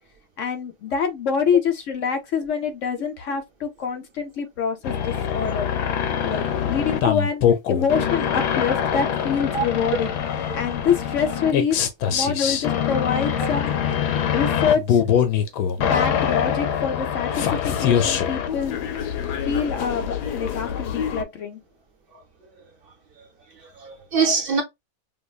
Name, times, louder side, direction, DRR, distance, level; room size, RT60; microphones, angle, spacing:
voice 1, 0.4-5.7 6.2-7.4 7.7-10.1 10.5-11.8 12.1-13.7 14.3-15.0 15.8-18.8 19.4-21.6, left 6 dB, 60° left, 0.9 m, -26 dB
sound 1, 4.8-21.2, left 8 dB, 90° left, 1.2 m, -24 dB
voice 2, 23.6-24.6, right 5 dB, 45° right, 0.8 m, -25 dB
5.3 x 2.0 x 2.3 m
omnidirectional pair, 1.7 m